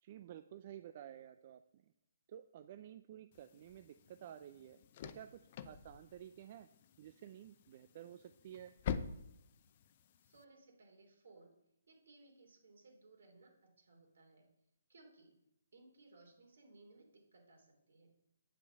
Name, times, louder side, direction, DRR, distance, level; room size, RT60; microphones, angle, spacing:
voice 1, 0.0-1.8 2.3-5.4 5.6-6.7 7.0-8.7, right 10 dB, 40° right, 10 dB, 0.5 m, -53 dB
sound 1, 3.3-10.4, left 7 dB, 40° left, 0.7 m, -47 dB
voice 2, 10.2-11.5 11.9-14.5 14.9-15.4 15.7-18.2, right 2 dB, 70° right, 3 dB, 3.5 m, -63 dB
8.9 x 6.0 x 8.2 m, 0.84 s
hypercardioid pair, 150°, 0 cm